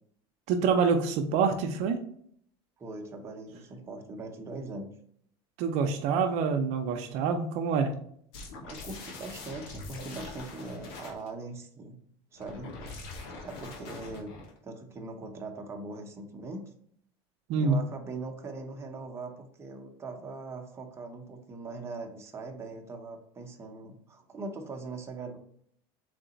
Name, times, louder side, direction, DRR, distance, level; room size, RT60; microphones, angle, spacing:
voice 1, 0.5-2.0 5.6-8.0 17.5-17.8, right 5 dB, 65° right, 4 dB, 0.6 m, -26 dB
voice 2, 2.8-5.0 8.6-12.1 12.3-12.8 13.4-14.3 14.6-16.6 17.5-25.4, right 3 dB, 20° right, 2 dB, 0.8 m, -41 dB
sound 1, 8.3-11.3 12.3-14.6, left 3 dB, 85° left, 1.1 m, -43 dB
3.9 x 3.3 x 3.9 m, 0.64 s
supercardioid pair, 125°, 12 cm